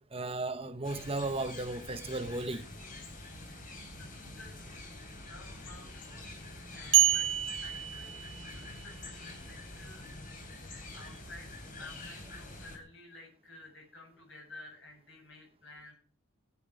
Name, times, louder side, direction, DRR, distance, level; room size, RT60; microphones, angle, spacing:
voice 1, 0.0-2.7, right 2 dB, 25° right, 0.9 m, -35 dB
sound 1, 0.8-12.8, left 2 dB, 40° left, 3.3 m, -46 dB
voice 2, 3.9-4.9 5.2-10.1 10.3-15.9, left 2 dB, 60° left, 8.0 m, -53 dB
sound 2, 6.9-8.8, right 14 dB, 60° right, 1.0 m, -27 dB
20.5 x 8.6 x 5.0 m
head